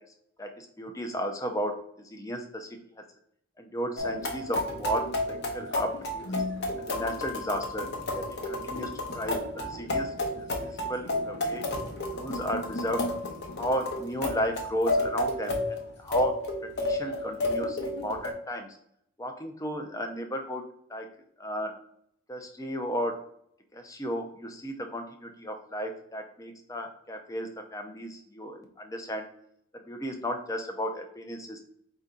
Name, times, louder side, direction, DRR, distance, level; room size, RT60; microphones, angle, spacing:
voice 1, 0.4-1.7 2.0-2.7 3.6-6.3 6.8-7.9 8.1-11.6 12.1-13.1 13.6-16.3 16.6-18.8 19.2-20.6 20.9-21.1 21.4-21.7 22.3-23.3 23.7-29.3 29.9-31.6, equal, 15° left, 5 dB, 0.5 m, -34 dB
sound 1, 4.0-18.3, left 1 dB, 50° left, 0.8 m, -31 dB
4.5 x 2.7 x 3.6 m, 0.69 s
head